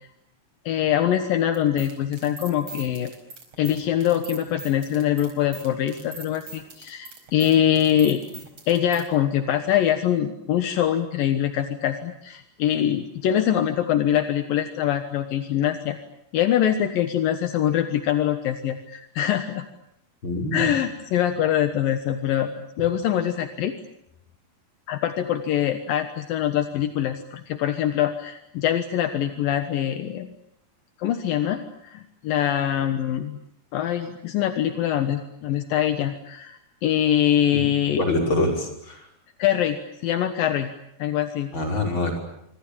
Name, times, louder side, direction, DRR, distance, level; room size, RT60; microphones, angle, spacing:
voice 1, 0.7-3.1 3.6-8.2 8.7-16.0 16.3-19.6 20.5-23.7 24.9-30.3 31.0-33.4 33.7-38.0 39.4-39.8 40.0-40.7 41.0-41.5, left 10 dB, 75° left, 8 dB, 3.1 m, -23 dB
sound 1, 1.5-9.0, right 4 dB, 45° right, 5.7 m, -41 dB
voice 2, 20.2-20.7 37.5-37.6 38.0-39.0 41.5-42.2, left 2 dB, 35° left, 2 dB, 6.3 m, -25 dB
26.5 x 25.5 x 8.8 m, 0.78 s
omnidirectional pair, 4.1 m